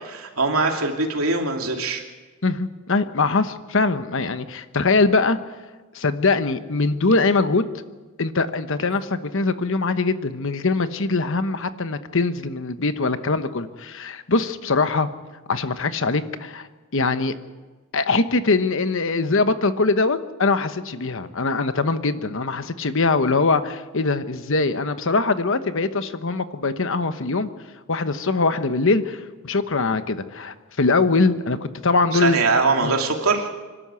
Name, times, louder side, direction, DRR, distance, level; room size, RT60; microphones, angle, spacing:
voice 1, 0.0-2.0 32.1-33.5, right 3 dB, 85° right, 2 dB, 2.8 m, -22 dB
voice 2, 2.4-5.4 5.9-7.7 8.2-15.1 15.5-16.7 16.9-17.3 17.9-27.5 27.9-32.4 32.8-32.9, left 3 dB, 65° left, 11 dB, 1.1 m, -22 dB
25.0 x 12.5 x 8.4 m, 1.3 s
head